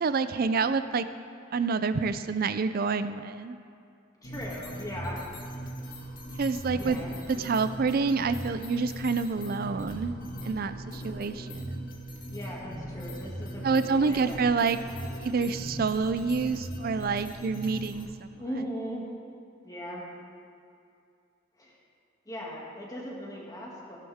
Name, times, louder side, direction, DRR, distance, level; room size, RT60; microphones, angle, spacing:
voice 1, 0.0-1.0 1.5-3.6 6.4-7.0 7.4-10.2 10.4-11.9 13.6-14.8 15.2-18.4, right 4 dB, 50° right, 12 dB, 0.4 m, -28 dB
sound 1, 4.2-18.0, right 1 dB, 45° left, 1.8 m, -39 dB
voice 2, 4.2-5.2 6.7-7.1 12.3-14.4 18.4-19.1 19.6-20.0 21.6-21.7 22.3-24.0, equal, 20° left, -4 dB, 2.3 m, -38 dB
16.0 x 11.5 x 3.6 m, 2.5 s
head